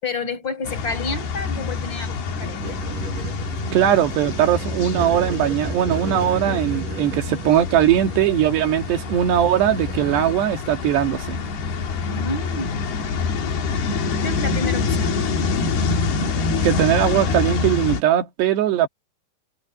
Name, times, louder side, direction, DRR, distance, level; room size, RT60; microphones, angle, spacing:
voice 1, 0.0-2.8 12.1-12.8 14.2-15.1, left 3 dB, 25° left, 5.8 m, -30 dB
sound 1, 0.6-18.0, left 4 dB, 70° left, 4.4 m, -26 dB
sound 2, 0.7-10.3, right 3 dB, 50° right, 8.3 m, -33 dB
voice 2, 3.7-11.4 16.6-18.9, right 10 dB, 90° right, 4.2 m, -20 dB
omnidirectional pair, 4.7 m